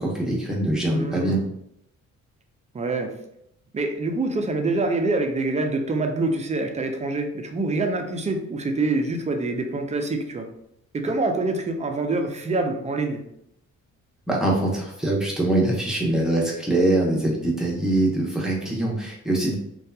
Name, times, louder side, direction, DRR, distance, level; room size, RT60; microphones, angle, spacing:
voice 1, 0.0-1.4 14.3-19.5, right 1 dB, ahead, -4 dB, 0.8 m, -23 dB
voice 2, 0.9-1.4 2.7-3.1 3.7-10.5 10.9-13.2, right 2 dB, 25° right, 4 dB, 0.4 m, -25 dB
2.7 x 2.3 x 2.2 m, 0.76 s
cardioid pair, 90°, 30 cm